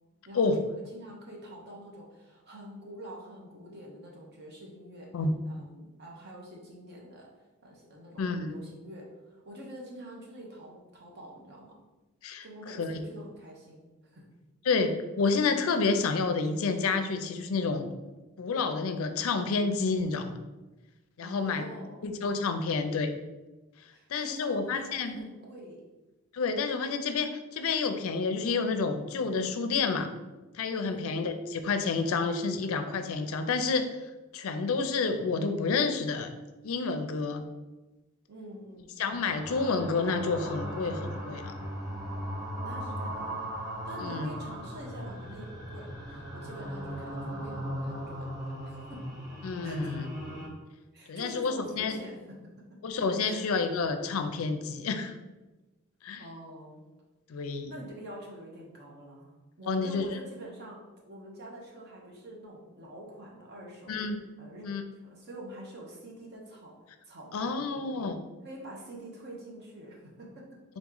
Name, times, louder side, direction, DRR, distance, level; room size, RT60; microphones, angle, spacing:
voice 1, 0.3-5.1 5.4-7.3 7.6-11.8 12.4-14.2 21.2-22.0 23.9-25.8 30.8-31.2 38.3-38.9 42.6-43.5 43.8-49.1 49.6-49.9 50.9-52.8 53.2-53.4 56.2-56.8 57.7-64.0 64.4-64.7 65.0-68.1 68.4-70.6, right 1 dB, 50° right, -2 dB, 0.9 m, -46 dB
voice 2, 8.2-8.6 12.2-13.0 14.7-17.9 18.4-20.4 21.2-21.6 22.0-23.1 24.1-25.2 26.3-30.1 30.5-33.9 34.3-36.3 36.6-37.5 39.0-41.5 44.0-44.3 49.4-50.1 51.1-51.9 52.8-55.1 56.0-56.2 57.3-57.7 59.7-60.1 63.9-64.2 64.6-64.8 67.3-68.1, left 4 dB, 70° left, 7 dB, 0.4 m, -29 dB
sound 1, 39.1-50.5, equal, 15° right, 0.8 m, -38 dB
3.7 x 3.0 x 3.7 m, 1.1 s
head